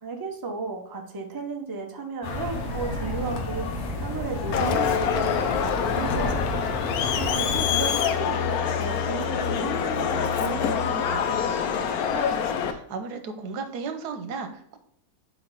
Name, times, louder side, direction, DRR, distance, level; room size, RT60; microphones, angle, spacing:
voice 1, 0.0-6.7 7.1-12.3, right 4 dB, 25° right, 3 dB, 0.5 m, -34 dB
sound 1, 2.2-7.6, left 2 dB, 50° left, 1.1 m, -31 dB
Crowd, 4.5-12.7, left 7 dB, 75° left, 1.1 m, -25 dB
voice 2, 12.6-14.8, right 4 dB, 90° right, 7 dB, 1.4 m, -34 dB
4.6 x 4.1 x 5.3 m, 0.71 s
omnidirectional pair, 1.7 m